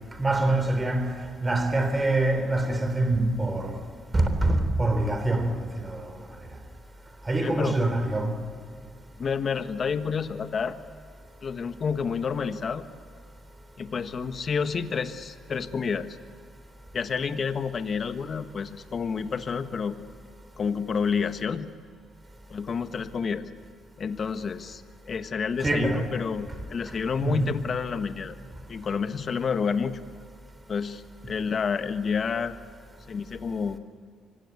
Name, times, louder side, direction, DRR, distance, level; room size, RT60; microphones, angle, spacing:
voice 1, 0.2-3.8 4.1-6.1 7.3-8.4 25.6-26.1 27.2-27.6, right 2 dB, 20° right, 3.7 m, -25 dB
voice 2, 7.4-7.7 9.2-10.8 11.4-12.8 13.8-16.2 16.9-20.0 20.6-21.7 22.5-23.5 24.0-28.4 28.7-30.0 30.7-32.5 33.1-33.8, left 6 dB, 45° left, 1.3 m, -29 dB
25.0 x 17.0 x 9.5 m
supercardioid pair, 75°, 0 cm